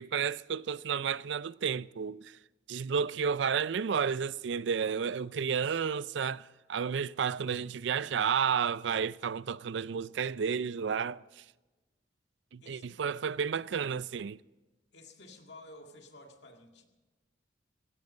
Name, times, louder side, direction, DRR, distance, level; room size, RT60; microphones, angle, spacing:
voice 1, 0.0-2.4 2.7-11.4 12.5-14.4, right 6 dB, 70° right, 0.4 m, -32 dB
voice 2, 4.8-5.3 12.6-12.9 14.9-16.8, left 2 dB, 65° left, 2.1 m, -52 dB
16.5 x 15.0 x 5.4 m
head